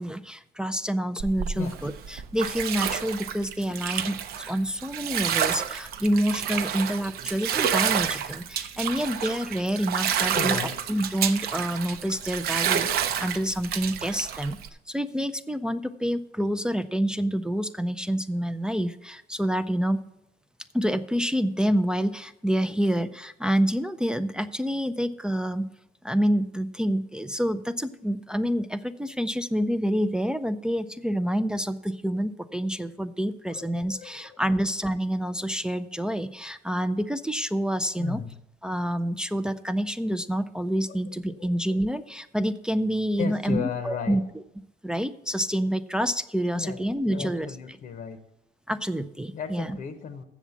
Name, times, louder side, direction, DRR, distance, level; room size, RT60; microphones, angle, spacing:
voice 1, 0.0-10.6 10.9-14.6 14.9-20.0 20.7-25.7 26.0-38.2 38.6-44.2 44.8-47.5 48.7-49.8, equal, 5° right, 9 dB, 0.4 m, -27 dB
Bathtub (filling or washing), 1.2-14.7, right 9 dB, 70° right, 0.7 m, -29 dB
voice 2, 10.3-10.8 33.5-34.4 37.9-38.3 40.9-41.0 41.4-41.5 43.2-44.2 46.5-46.8 47.1-48.2 49.3-50.2, left 7 dB, 55° left, 8 dB, 0.8 m, -35 dB
7.2 x 7.2 x 8.1 m, 0.86 s
cardioid pair, 110°, 17 cm